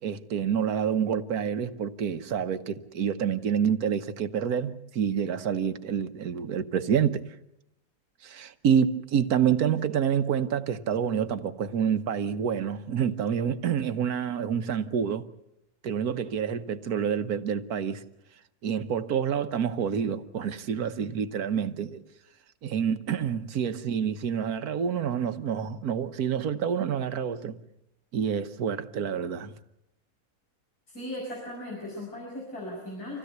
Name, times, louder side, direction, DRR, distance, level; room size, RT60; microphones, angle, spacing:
voice 1, 0.0-7.2 8.2-15.3 15.8-18.0 18.6-22.0 22.6-27.6 28.1-29.5, right 8 dB, 75° right, 1.5 m, -28 dB
voice 2, 30.9-33.2, left 1 dB, 80° left, 6.9 m, -37 dB
26.5 x 16.5 x 8.0 m
omnidirectional pair, 1.6 m